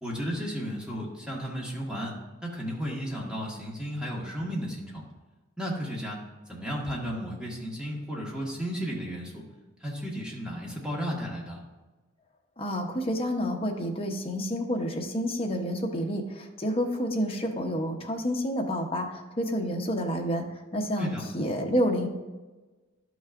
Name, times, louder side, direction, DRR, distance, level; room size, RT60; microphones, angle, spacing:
voice 1, 0.0-2.1 2.4-5.0 5.6-6.2 6.5-9.4 9.8-11.6 21.0-21.2, equal, 5° right, -4 dB, 1.6 m, -34 dB
voice 2, 12.6-20.5 20.7-22.1, equal, 30° left, 2 dB, 0.9 m, -29 dB
11.5 x 6.2 x 2.5 m, 1.2 s
head